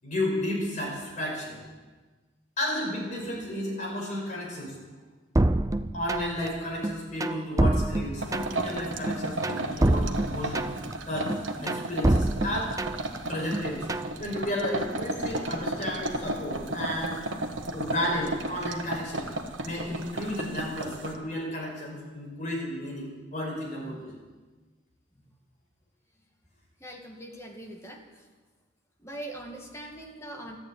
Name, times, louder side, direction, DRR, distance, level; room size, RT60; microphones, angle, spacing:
voice 1, 0.0-1.6 2.6-4.8 5.9-10.7 11.1-11.3 11.6-12.7 13.3-13.9 14.2-17.2 17.7-19.3 19.6-24.1, left 1 dB, 40° left, -2 dB, 5.5 m, -32 dB
sound 1, 5.4-6.5 6.8-8.7 9.1-10.9 11.3-13.2 13.5-14.1, right 1 dB, 15° right, 0.5 m, -26 dB
sound 2, 8.2-21.1, right 2 dB, 80° right, 1.5 m, -34 dB
voice 2, 26.8-28.0 29.0-30.6, right 1 dB, 15° left, 1 dB, 2.1 m, -41 dB
13.0 x 12.0 x 9.0 m, 1.3 s
head